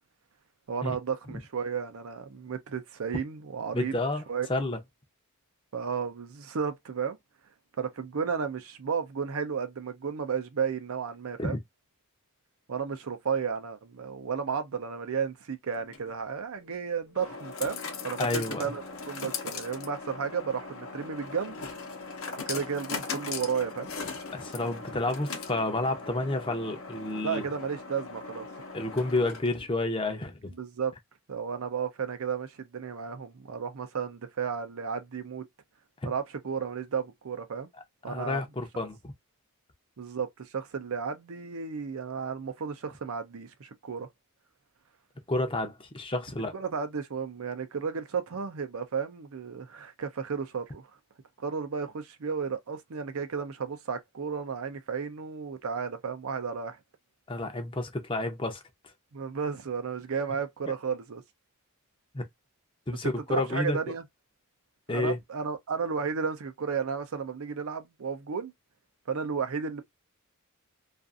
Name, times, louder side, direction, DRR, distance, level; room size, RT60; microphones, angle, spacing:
voice 1, 0.7-4.0 4.3-4.5 5.7-7.2 7.8-11.6 12.7-17.8 18.0-21.6 22.5-23.9 27.2-28.5 30.6-30.9 31.3-35.4 36.0-37.7 38.0-38.4 40.0-44.1 46.5-50.9 51.4-56.8 59.1-61.2 63.3-64.0 64.9-68.5 69.1-69.8, right 6 dB, 70° right, 0.5 m, -33 dB
voice 2, 3.7-4.2 4.5-4.8 11.4-11.6 18.2-18.7 24.3-27.4 28.7-30.5 36.0-36.1 38.1-39.1 45.3-46.5 57.3-58.6 62.1-62.2 62.9-63.8 64.9-65.2, left 2 dB, 25° left, 0.6 m, -30 dB
sound 1, 15.7-29.7, left 4 dB, 65° left, 0.7 m, -39 dB
2.5 x 2.4 x 2.4 m
head